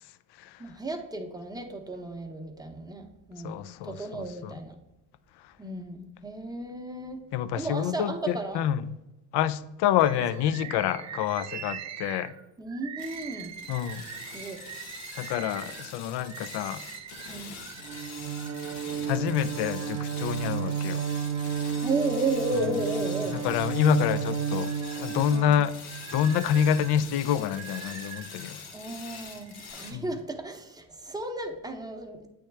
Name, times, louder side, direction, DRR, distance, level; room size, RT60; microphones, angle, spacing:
voice 1, 0.6-4.8 5.6-7.2 7.5-8.6 9.8-9.9 10.6-10.7 12.6-13.5 14.3-14.6 17.3-17.5 20.4-20.6 21.8-23.4 25.3-25.5 28.7-32.3, right 2 dB, 10° right, 0.8 m, -34 dB
voice 2, 3.4-4.5 7.3-9.0 9.3-12.3 13.7-14.0 15.2-16.8 19.1-21.0 23.3-25.7 26.1-28.6 29.9-30.1, left 9 dB, 60° left, 0.5 m, -27 dB
Bird, 10.0-18.9 19.4-20.4 21.0-22.0 22.4-23.8 24.3-28.6 29.3-29.7, right 9 dB, 40° right, 0.4 m, -44 dB
sound 1, 13.0-29.9, left 5 dB, 90° left, 1.0 m, -44 dB
Bowed string instrument, 17.8-26.2, right 7 dB, 90° right, 0.7 m, -32 dB
8.4 x 3.5 x 3.3 m
supercardioid pair, 80°, 47 cm